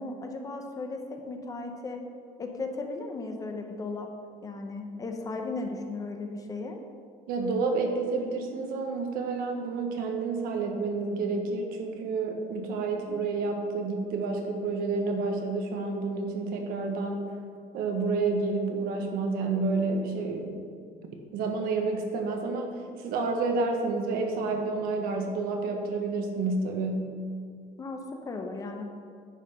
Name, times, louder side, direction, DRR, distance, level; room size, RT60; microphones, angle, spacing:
voice 1, 0.0-2.0 2.4-4.1 4.4-6.8 27.8-28.8, left 3 dB, 25° left, 4 dB, 0.8 m, -36 dB
voice 2, 7.3-17.3 17.7-20.7 21.1-27.1, right 3 dB, 80° right, 3 dB, 1.4 m, -29 dB
10.0 x 5.7 x 5.6 m, 2.2 s
cardioid pair, 160°, 15 cm